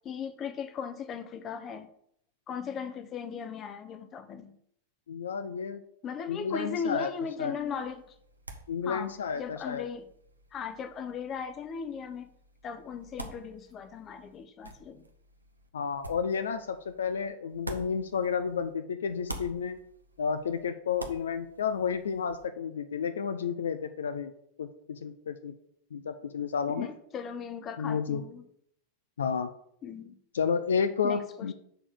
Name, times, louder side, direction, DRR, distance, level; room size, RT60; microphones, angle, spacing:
voice 1, 0.0-1.9 2.5-4.6 6.0-8.1 8.9-9.1 9.4-10.0 10.5-12.3 12.6-15.0 26.7-28.4 29.8-30.1 31.0-31.5, left 6 dB, 30° left, 0.8 m, -37 dB
voice 2, 5.1-5.8 6.3-7.1 7.4-7.5 8.7-9.9 15.7-19.8 20.2-24.3 24.6-25.5 25.9-26.9 27.8-28.2 29.2-29.5 30.3-31.5, left 6 dB, 65° left, 0.5 m, -31 dB
sound 1, 7.6-18.7 19.0-22.4, right 2 dB, 80° right, 0.9 m, -48 dB
6.7 x 4.3 x 6.6 m
figure-of-eight pair, 90°, 0 cm